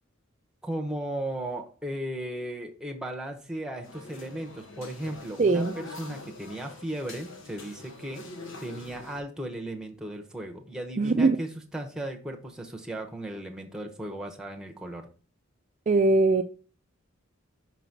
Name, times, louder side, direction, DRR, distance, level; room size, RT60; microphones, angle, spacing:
voice 1, 0.6-8.2 8.6-15.0, right 1 dB, 5° right, 2 dB, 0.9 m, -36 dB
sound 1, 3.8-9.2, left 2 dB, 65° left, 1.0 m, -44 dB
voice 2, 5.4-5.7 11.0-11.4 15.9-16.4, right 3 dB, 35° right, 6 dB, 0.4 m, -21 dB
5.9 x 4.0 x 5.9 m, 0.40 s
head